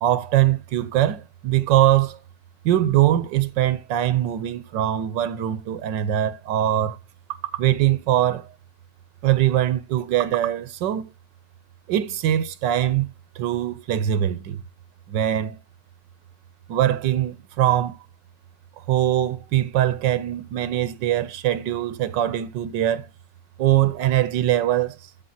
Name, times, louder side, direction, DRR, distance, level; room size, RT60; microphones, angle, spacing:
voice 1, 0.0-2.2 2.6-7.0 7.6-8.5 9.2-11.1 11.9-14.6 15.1-15.6 16.7-18.0 18.9-23.1 23.6-25.0, right 12 dB, 90° right, 1.5 m, -22 dB
14.0 x 5.0 x 2.8 m
omnidirectional pair, 1.9 m